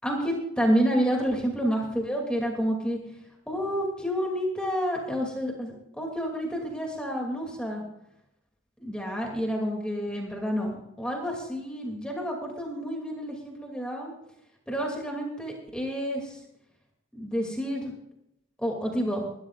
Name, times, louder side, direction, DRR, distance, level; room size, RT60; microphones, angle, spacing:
voice 1, 0.0-3.0 3.5-7.8 8.8-14.1 14.7-16.4 17.1-17.9 18.6-19.2, equal, 5° left, 0 dB, 2.5 m, -29 dB
21.5 x 13.0 x 2.5 m, 0.80 s
head